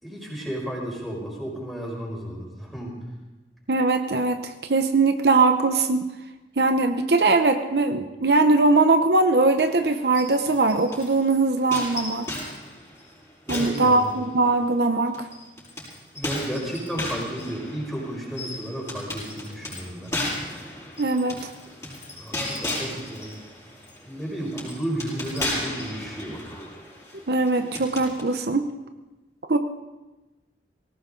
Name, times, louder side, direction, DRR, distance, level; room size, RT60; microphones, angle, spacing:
voice 1, 0.0-3.0 13.5-14.2 16.1-20.1 21.8-21.9 22.2-23.4 24.0-26.4, right 1 dB, ahead, -4 dB, 5.1 m, -33 dB
voice 2, 3.7-6.1 6.6-12.3 13.5-15.3 21.0-21.4 27.3-28.7 29.5-29.6, right 3 dB, 65° right, 7 dB, 0.8 m, -21 dB
sound 1, 9.6-11.2 11.7-14.6 15.1-28.2, left 1 dB, 15° left, 6.4 m, -35 dB
19.5 x 17.5 x 3.9 m, 1.1 s
head